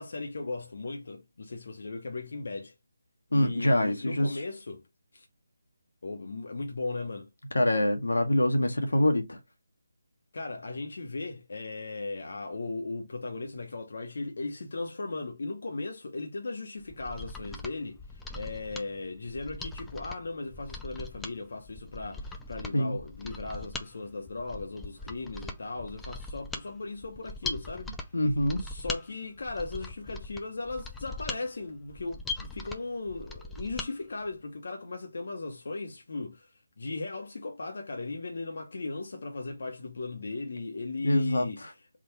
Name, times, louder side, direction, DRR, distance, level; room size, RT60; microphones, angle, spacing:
voice 1, 0.0-2.7 3.3-4.8 5.1-5.3 6.0-7.3 10.3-27.9 28.6-36.5 36.8-41.8, left 3 dB, 60° left, 0.9 m, -37 dB
voice 2, 3.3-4.3 7.5-9.4 22.7-22.9 28.1-28.6 41.0-41.5, left 1 dB, 85° left, 1.1 m, -25 dB
Mechanisms, 16.8-33.9 34.3-34.4, left 2 dB, 5° left, 0.4 m, -41 dB
3.7 x 2.4 x 4.4 m
figure-of-eight pair, 160°, 0 cm